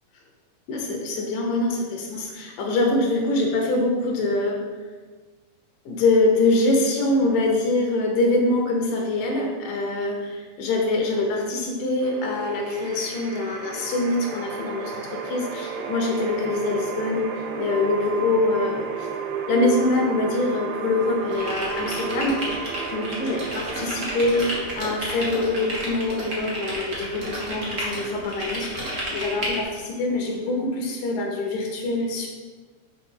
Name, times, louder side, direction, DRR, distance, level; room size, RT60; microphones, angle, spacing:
voice 1, 0.7-4.6 5.9-19.1 19.5-22.5 22.9-32.3, left 2 dB, 70° left, 1 dB, 2.4 m, -24 dB
sound 1, 12.0-31.0, right 6 dB, 80° right, 2.6 m, -34 dB
sound 2, 21.3-29.6, equal, 50° right, 0.9 m, -31 dB
6.1 x 5.4 x 5.5 m, 1.4 s
omnidirectional pair, 4.4 m